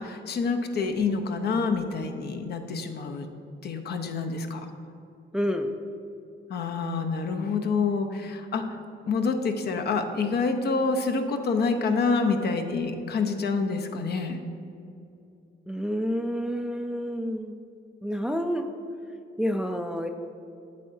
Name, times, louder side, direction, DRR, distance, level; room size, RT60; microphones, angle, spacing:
voice 1, 0.0-3.3 3.6-4.7 6.5-8.6 9.0-14.4, left 4 dB, 55° left, 6 dB, 0.7 m, -27 dB
voice 2, 5.3-5.7 15.7-17.5 18.0-18.7 19.4-20.1, equal, 5° right, 6 dB, 0.4 m, -28 dB
8.4 x 7.4 x 2.7 m, 2.6 s
cardioid pair, 90°, 20 cm